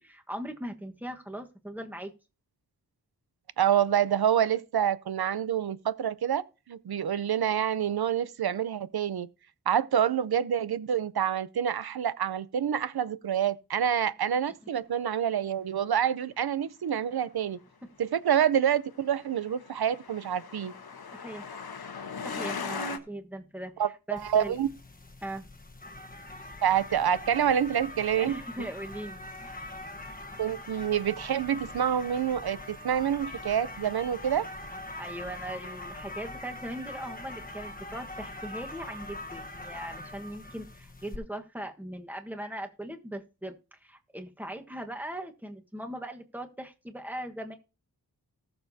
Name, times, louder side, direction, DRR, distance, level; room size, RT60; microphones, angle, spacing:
voice 1, 0.0-2.1 21.1-21.6 22.2-24.6 25.2-25.5 28.1-29.7 35.0-47.6, right 1 dB, 5° right, 1.4 m, -40 dB
voice 2, 3.6-6.4 6.7-9.3 9.7-17.6 18.0-20.7 23.8-24.7 26.6-28.4 30.4-34.4, right 9 dB, 80° right, 0.7 m, -27 dB
Truck, 18.9-23.0, left 5 dB, 75° left, 1.1 m, -38 dB
sound 1, 24.2-41.2, left 2 dB, 25° left, 1.2 m, -43 dB
18.5 x 6.8 x 2.8 m
wide cardioid pair, 80°, 37 cm